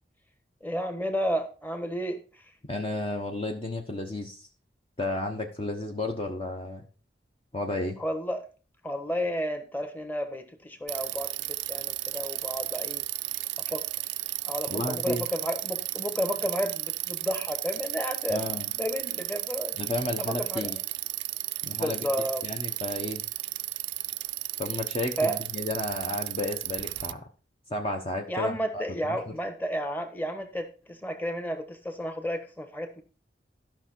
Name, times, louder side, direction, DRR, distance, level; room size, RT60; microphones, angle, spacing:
voice 1, 0.6-2.2 8.0-8.5 8.8-13.1 13.6-13.8 14.4-18.5 18.8-19.7 20.2-20.7 21.8-22.4 25.2-25.4 28.3-33.0, equal, 10° left, 6 dB, 1.3 m, -32 dB
voice 2, 2.7-4.5 5.0-6.8 7.5-8.0 14.7-15.3 18.3-18.7 19.8-20.8 21.6-22.0 22.4-23.2 24.6-27.3 27.7-29.2, left 2 dB, 30° left, 3 dB, 1.0 m, -32 dB
Bicycle, 10.9-27.1, right 18 dB, 75° right, 0.4 m, -34 dB
12.5 x 6.0 x 4.5 m, 0.36 s
head